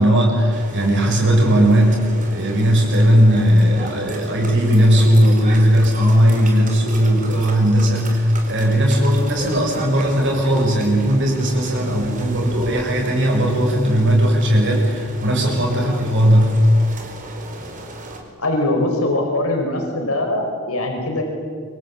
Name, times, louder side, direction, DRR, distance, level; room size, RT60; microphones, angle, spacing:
voice 1, 0.0-2.0 2.3-16.6, equal, 55° right, 0 dB, 6.9 m, -17 dB
sound 1, 0.5-18.2, right 2 dB, 35° right, 4.3 m, -35 dB
voice 2, 18.4-21.2, left 1 dB, 75° left, 2 dB, 5.2 m, -22 dB
27.0 x 24.5 x 8.6 m, 2.1 s
head